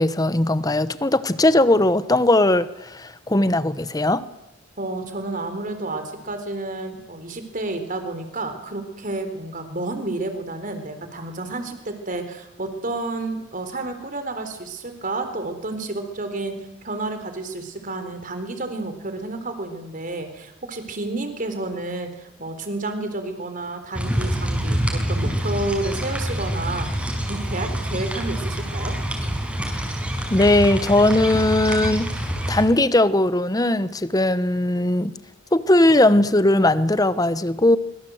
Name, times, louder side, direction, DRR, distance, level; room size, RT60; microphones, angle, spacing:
voice 1, 0.0-4.2 30.3-32.1 32.5-35.1 35.5-37.8, left 1 dB, 20° left, 0.9 m, -19 dB
voice 2, 4.8-16.5 16.8-29.0, right 2 dB, 45° right, 4.0 m, -30 dB
sound 1, 23.9-32.6, equal, 5° right, 5.4 m, -26 dB
24.5 x 23.5 x 7.9 m
head